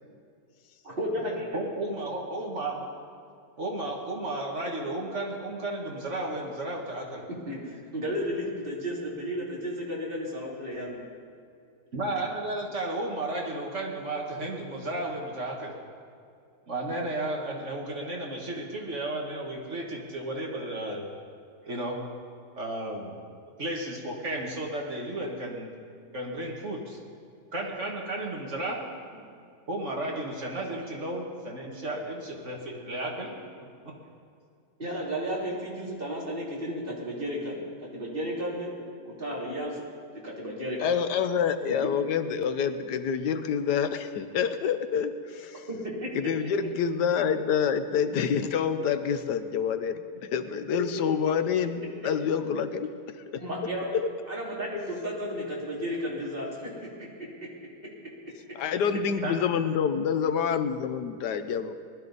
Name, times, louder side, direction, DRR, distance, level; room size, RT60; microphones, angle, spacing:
voice 1, 0.8-1.6 7.5-11.1 34.8-39.8 40.2-40.9 45.7-46.1 53.3-53.9 54.3-57.1, equal, 30° right, -5 dB, 3.1 m, -33 dB
voice 2, 1.5-2.9 3.6-7.2 11.9-15.7 16.7-21.1 21.7-22.0 22.6-23.1 23.6-25.7 26.1-27.0 27.5-28.9 29.7-33.3 33.9-34.0 59.2-59.3, right 1 dB, 45° right, 0 dB, 1.8 m, -33 dB
voice 3, 40.8-45.5 46.1-52.9 53.3-53.4 53.9-54.1 58.5-61.8, left 7 dB, 85° left, 10 dB, 1.3 m, -27 dB
20.0 x 12.5 x 4.0 m, 2.4 s
omnidirectional pair, 1.7 m